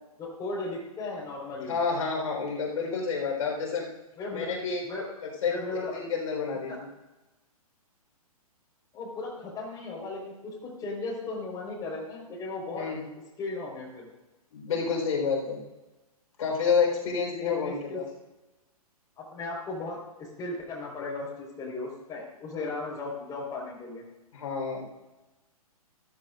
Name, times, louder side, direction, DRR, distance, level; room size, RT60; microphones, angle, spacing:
voice 1, 0.2-1.7 4.2-4.5 4.9-5.0 5.5-5.9 6.7-6.8 8.9-12.9 13.4-14.1 17.4-18.0 19.2-24.0, left 3 dB, 20° left, -3 dB, 4.6 m, -36 dB
voice 2, 1.7-3.9 4.3-4.8 5.4-5.6 5.9-6.9 12.7-13.0 14.5-15.6 16.4-18.0 24.3-24.8, left 5 dB, 65° left, -2 dB, 4.4 m, -29 dB
15.0 x 14.5 x 2.6 m, 1.1 s
hypercardioid pair, 125°, 19 cm